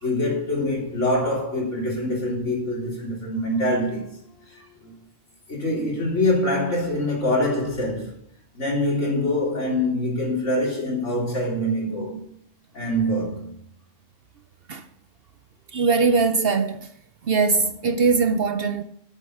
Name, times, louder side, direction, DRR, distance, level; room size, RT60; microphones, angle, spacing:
voice 1, 0.0-4.2 4.5-4.9 5.5-8.2 8.5-12.2 12.7-13.5, left 1 dB, 70° left, 4.0 m, -24 dB
voice 2, 15.7-16.9 17.3-18.8, right 4 dB, 60° right, 0.8 m, -21 dB
8.4 x 8.4 x 6.2 m
omnidirectional pair, 1.3 m